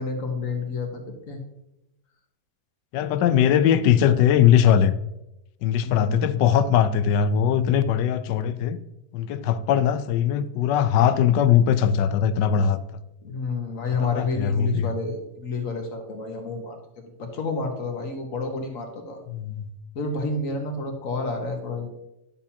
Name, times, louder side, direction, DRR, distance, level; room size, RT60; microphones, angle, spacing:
voice 1, 0.0-1.4 3.0-3.3 5.8-6.2 13.2-19.2 19.9-22.0, left 3 dB, 50° left, 3 dB, 1.6 m, -30 dB
voice 2, 2.9-5.0 5.6-8.8 9.1-13.0 14.0-14.9 19.3-19.7, left 9 dB, 75° left, 13 dB, 1.2 m, -20 dB
10.5 x 7.0 x 2.8 m, 0.86 s
omnidirectional pair, 2.0 m